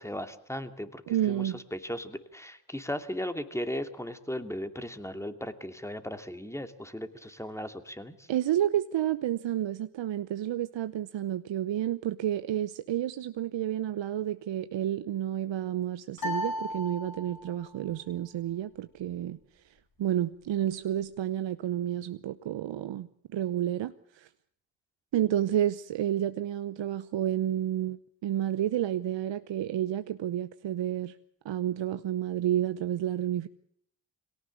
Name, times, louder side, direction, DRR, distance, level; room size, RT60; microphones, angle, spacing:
voice 1, 0.0-8.3, left 1 dB, 5° left, 2.7 m, -37 dB
voice 2, 1.1-1.6 8.3-19.7 20.0-24.3 25.1-31.2 31.4-33.5, right 11 dB, 60° right, 0.9 m, -30 dB
sound 1, 16.2-17.7, left 1 dB, 45° left, 6.9 m, -35 dB
22.5 x 18.0 x 8.7 m
hypercardioid pair, 45°, 49 cm